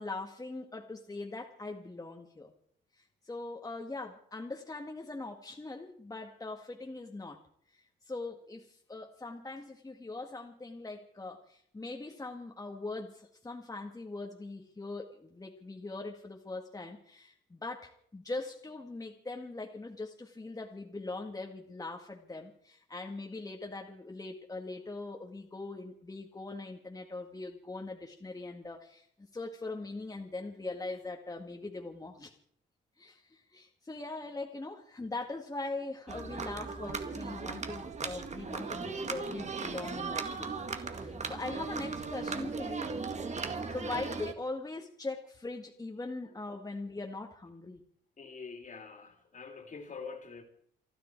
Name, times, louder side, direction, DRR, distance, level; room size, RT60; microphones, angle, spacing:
voice 1, 0.0-2.5 2.9-7.4 7.7-29.1 29.3-32.3 33.0-40.5 40.9-42.9 43.4-47.8, left 2 dB, 20° left, 2 dB, 1.9 m, -41 dB
sound 1, 36.1-44.3, right 4 dB, 35° right, 2.1 m, -37 dB
voice 2, 48.2-50.4, left 5 dB, 40° left, 6 dB, 3.2 m, -45 dB
29.0 x 10.0 x 4.6 m, 0.65 s
cardioid pair, 90°, 20 cm